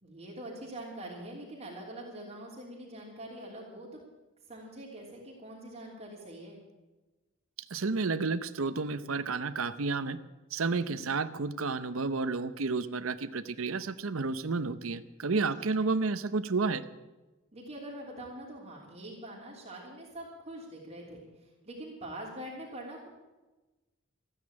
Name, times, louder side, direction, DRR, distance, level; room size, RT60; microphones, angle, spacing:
voice 1, 0.0-4.0 4.5-6.6 10.7-11.1 15.6-15.9 17.5-23.1, right 1 dB, 30° right, -4 dB, 3.2 m, -44 dB
voice 2, 7.7-10.2 10.5-16.8, right 4 dB, 80° right, 12 dB, 0.8 m, -31 dB
14.5 x 9.9 x 8.8 m, 1.1 s
head